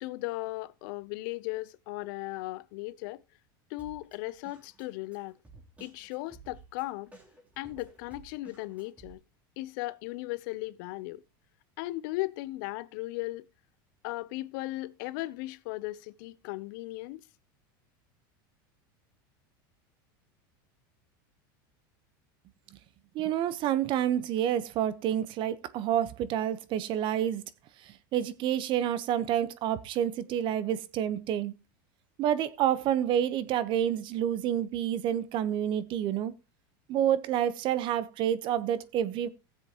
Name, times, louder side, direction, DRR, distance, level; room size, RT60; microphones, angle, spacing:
voice 1, 0.0-3.2 3.7-5.3 5.8-7.1 7.6-9.2 9.6-11.2 11.8-13.4 14.0-17.2, left 19 dB, 65° left, 0.6 m, -37 dB
Drum kit, 3.8-9.1, right 4 dB, 10° right, 3.1 m, -54 dB
voice 2, 23.1-27.4 27.9-31.5 32.2-36.3 36.9-39.3, right 10 dB, 45° right, 0.9 m, -28 dB
17.5 x 7.5 x 2.9 m
supercardioid pair, 130°, 12 cm